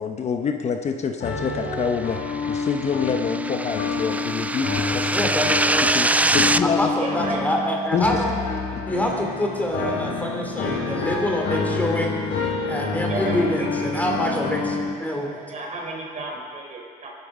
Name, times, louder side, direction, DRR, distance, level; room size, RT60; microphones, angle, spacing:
voice 1, 0.0-2.2 2.5-5.3 5.9-6.9 7.9-8.2, left 6 dB, 40° left, 5 dB, 1.0 m, -27 dB
sound 1, 1.2-14.9, left 4 dB, 80° left, 5.7 m, -28 dB
sound 2, 2.2-6.6, right 2 dB, 10° right, 0.4 m, -23 dB
voice 2, 5.1-5.8 6.6-8.4 8.9-12.2 12.7-15.4, left 1 dB, 10° left, 1 dB, 3.2 m, -26 dB
voice 3, 7.0-7.4 13.1-14.0 15.5-17.1, right 3 dB, 45° right, 0 dB, 4.0 m, -33 dB
22.5 x 12.5 x 5.0 m, 2.2 s
cardioid pair, 110°, 17 cm